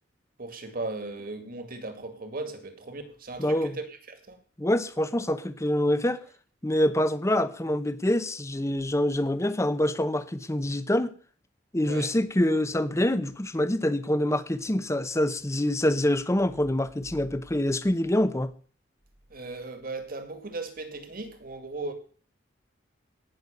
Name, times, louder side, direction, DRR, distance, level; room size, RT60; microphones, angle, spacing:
voice 1, 0.4-4.4 11.8-12.1 19.3-21.9, right 3 dB, 50° right, 2.1 m, -37 dB
voice 2, 3.4-3.8 4.6-6.2 6.6-11.1 11.7-18.5, left 1 dB, 15° left, 0.8 m, -25 dB
18.0 x 6.3 x 6.7 m
head